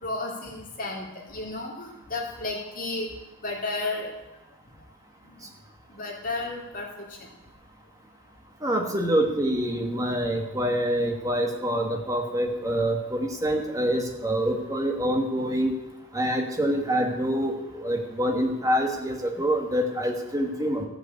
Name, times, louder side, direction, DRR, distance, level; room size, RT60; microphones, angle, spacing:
voice 1, 0.0-3.1 3.4-4.1 5.9-6.9, left 2 dB, 40° left, -1 dB, 2.5 m, -32 dB
voice 2, 8.6-15.7 16.1-20.9, equal, 15° right, 3 dB, 1.4 m, -26 dB
14.0 x 5.6 x 8.4 m, 0.98 s
head